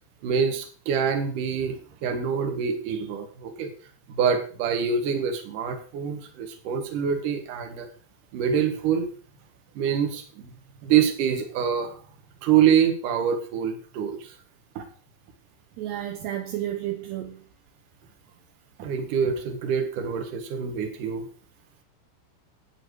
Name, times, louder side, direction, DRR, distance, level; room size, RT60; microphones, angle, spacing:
voice 1, 0.2-3.7 4.1-7.9 8.3-9.1 9.7-10.5 10.8-11.9 12.4-14.3 14.8-14.9 18.8-21.3, right 7 dB, 55° right, 5 dB, 2.5 m, -25 dB
voice 2, 15.8-17.4, right 12 dB, 80° right, 4 dB, 2.4 m, -31 dB
11.0 x 8.9 x 4.9 m, 0.40 s
omnidirectional pair, 6.0 m